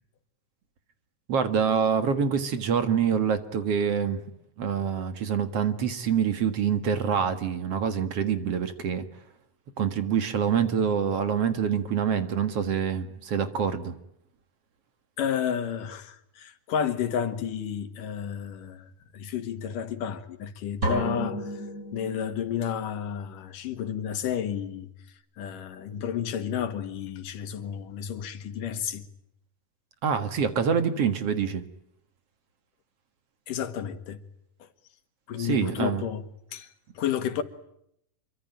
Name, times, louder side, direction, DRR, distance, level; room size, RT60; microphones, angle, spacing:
voice 1, 1.3-4.2 4.6-9.1 9.8-14.0 30.0-31.6 35.4-36.0, right 7 dB, 55° right, 2.5 m, -26 dB
voice 2, 15.2-21.7 21.9-24.9 25.4-29.1 33.5-34.2 34.6-34.7 35.3-36.2 36.5-36.7 36.9-37.4, left 8 dB, 85° left, 3.4 m, -31 dB
sound 1, 20.8-22.6, right 1 dB, 30° right, 6.1 m, -32 dB
26.5 x 24.0 x 9.1 m
omnidirectional pair, 3.7 m